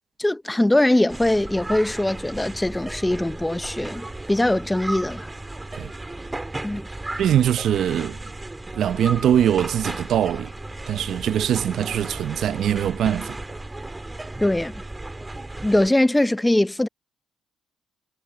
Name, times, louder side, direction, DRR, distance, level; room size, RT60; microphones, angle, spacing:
voice 1, 0.2-5.3 6.6-6.8 14.4-14.7 15.6-16.9, left 1 dB, 10° left, 0.7 m, -21 dB
sound 1, 1.1-15.9, right 2 dB, 15° right, 2.0 m, -35 dB
voice 2, 7.2-8.2 8.7-10.5 10.9-13.4, right 10 dB, 70° right, 0.8 m, -22 dB
cardioid pair, 90°, 0 cm